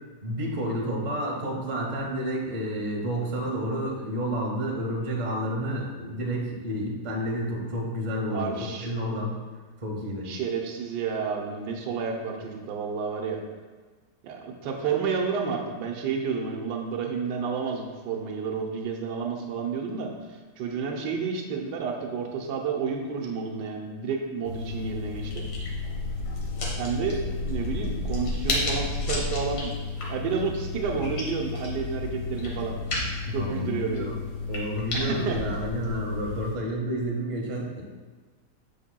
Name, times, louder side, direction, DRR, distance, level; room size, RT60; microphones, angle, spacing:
voice 1, 0.2-8.5 8.8-9.4 9.8-10.3 33.3-34.1 34.5-37.8, equal, 30° right, -1 dB, 0.9 m, -30 dB
voice 2, 8.3-8.9 10.2-13.4 14.2-20.1 20.6-25.5 26.8-29.7 30.1-32.8 33.3-34.1 34.9-35.4, right 5 dB, 80° right, 1 dB, 1.4 m, -30 dB
sound 1, 24.4-36.5, left 3 dB, 70° left, 1.8 m, -31 dB
8.4 x 5.8 x 2.2 m, 1.4 s
omnidirectional pair, 1.8 m